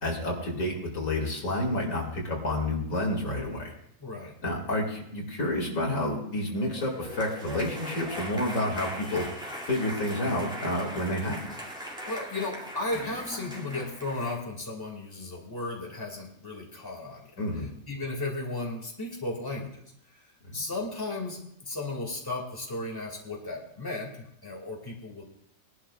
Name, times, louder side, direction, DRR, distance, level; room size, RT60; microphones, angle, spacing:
voice 1, 0.0-3.7 4.4-9.4 9.7-11.5 17.4-17.7 20.5-20.6, left 1 dB, 70° left, -1 dB, 2.7 m, -29 dB
voice 2, 4.0-4.4 11.8-17.3 17.5-19.7 20.1-20.2 20.5-25.2, left 2 dB, 15° left, -1 dB, 2.2 m, -35 dB
sound 1, 6.5-14.4, equal, 5° right, 2.6 m, -39 dB
20.5 x 11.5 x 2.4 m, 0.71 s
omnidirectional pair, 1.4 m